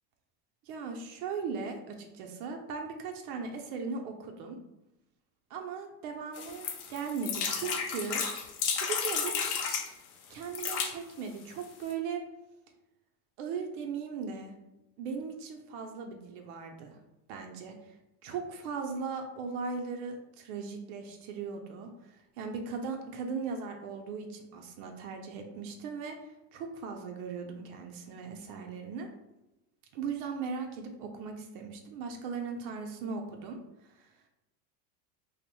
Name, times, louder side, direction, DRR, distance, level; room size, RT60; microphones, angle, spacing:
voice 1, 0.6-4.6 5.5-8.2 8.8-9.8 10.3-12.2 13.4-14.5 15.0-17.0 17.3-18.0 18.2-29.1 29.9-34.1, right 5 dB, 70° right, 3 dB, 0.6 m, -38 dB
sound 1, 6.4-9.9 10.4-10.9 11.6-11.7 11.9-12.0, left 6 dB, 55° left, 0.5 m, -32 dB
2.6 x 2.0 x 2.9 m, 0.95 s
supercardioid pair, 120°, 45 cm